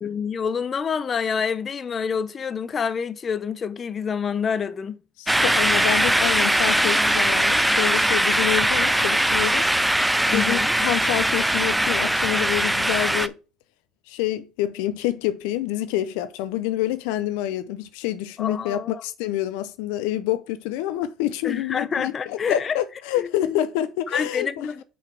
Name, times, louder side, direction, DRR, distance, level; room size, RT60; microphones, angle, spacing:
voice 1, 0.0-5.0 10.3-10.7 18.4-19.0 21.4-22.8 23.2-23.6 24.1-24.8, left 6 dB, 40° left, 0.6 m, -27 dB
voice 2, 5.2-9.6 10.3-13.3 14.1-24.7, left 13 dB, 85° left, 0.5 m, -27 dB
sound 1, 5.3-13.3, right 1 dB, 5° right, 0.4 m, -21 dB
5.8 x 4.0 x 5.8 m
supercardioid pair, 85°, 0 cm